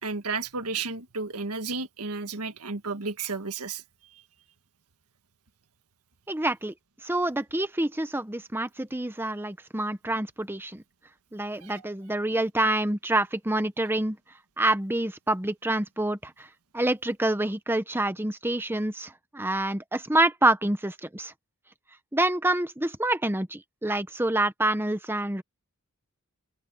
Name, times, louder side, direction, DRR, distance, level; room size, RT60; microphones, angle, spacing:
voice 1, 0.0-3.8 11.6-11.8, right 4 dB, 85° right, 1.6 m, -32 dB
voice 2, 6.3-6.7 7.0-10.8 11.3-14.2 14.6-16.3 16.7-21.3 22.1-25.4, right 1 dB, 10° right, 0.9 m, -27 dB
open air
head